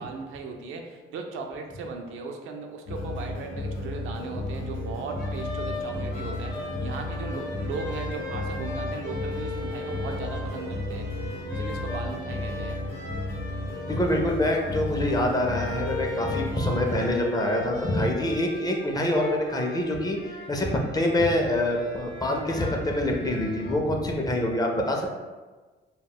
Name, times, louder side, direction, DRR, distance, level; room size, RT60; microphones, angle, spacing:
voice 1, 0.0-11.0 11.5-12.8, right 4 dB, 85° right, 2 dB, 0.4 m, -37 dB
sound 1, 2.9-17.1, left 2 dB, 85° left, 0.7 m, -33 dB
sound 2, 5.2-23.7, left 2 dB, 50° left, 0.8 m, -38 dB
voice 2, 13.9-25.1, left 1 dB, 20° left, 1 dB, 0.4 m, -26 dB
2.2 x 2.0 x 3.5 m, 1.3 s
cardioid pair, 90°, 20 cm